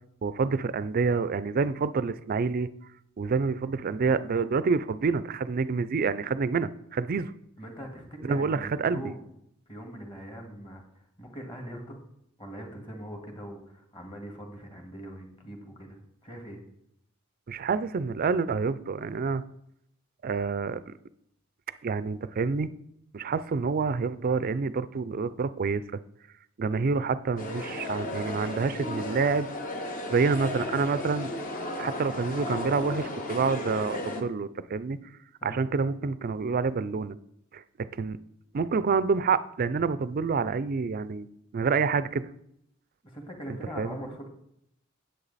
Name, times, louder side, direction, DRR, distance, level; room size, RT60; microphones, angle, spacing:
voice 1, 0.2-2.7 3.2-7.3 8.2-9.1 17.5-19.4 20.2-20.9 21.8-22.7 23.1-25.8 26.6-29.5 30.1-31.3 31.8-35.0 35.4-37.2 37.5-38.2 38.5-41.3 41.5-42.2 43.8-44.0, right 4 dB, 45° right, 15 dB, 0.4 m, -27 dB
voice 2, 7.6-9.2 9.7-10.8 11.2-12.0 12.4-16.6 35.4-35.6 43.0-44.3, equal, 25° left, 2 dB, 1.9 m, -42 dB
sound 1, 27.4-34.2, left 2 dB, 40° left, 1.2 m, -35 dB
9.9 x 8.1 x 4.1 m, 0.76 s
head